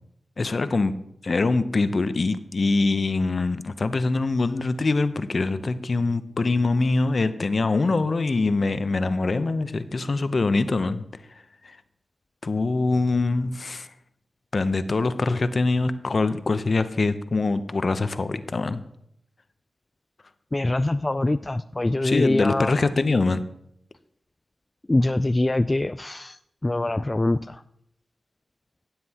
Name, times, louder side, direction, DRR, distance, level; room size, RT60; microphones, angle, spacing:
voice 1, 0.4-1.0 1.2-11.0 11.6-11.8 12.4-13.9 14.5-18.8 22.0-23.4, left 3 dB, 55° left, 11 dB, 0.7 m, -23 dB
voice 2, 20.5-22.7 24.9-26.4 26.6-27.6, left 2 dB, 25° left, 11 dB, 0.3 m, -24 dB
16.5 x 7.6 x 2.9 m, 0.74 s
cardioid pair, 50°, 0 cm